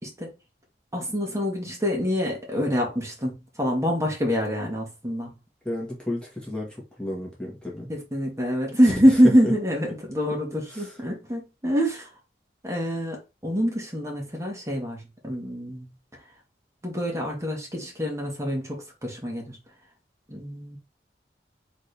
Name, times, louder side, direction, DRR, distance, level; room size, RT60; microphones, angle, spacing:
voice 1, 0.0-0.4 0.9-5.3 7.9-12.1 12.6-15.9 16.8-19.6 20.3-20.8, equal, 15° right, 1.5 m, -25 dB
voice 2, 5.6-7.9 9.4-9.5 10.7-10.9, left 1 dB, 5° left, 1.5 m, -33 dB
4.3 x 3.7 x 3.3 m
head